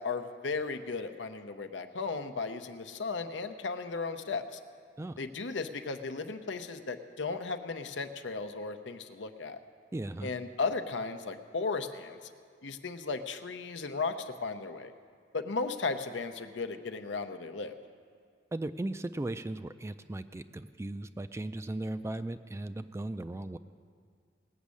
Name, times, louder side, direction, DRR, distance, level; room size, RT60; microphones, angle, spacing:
voice 1, 0.0-4.6 5.2-9.6 10.2-12.2 12.6-14.9 15.3-17.7, left 4 dB, 85° left, 8 dB, 0.8 m, -35 dB
voice 2, 9.9-10.3 18.5-23.6, right 2 dB, 15° right, 11 dB, 0.3 m, -37 dB
19.0 x 6.3 x 8.4 m, 2.1 s
head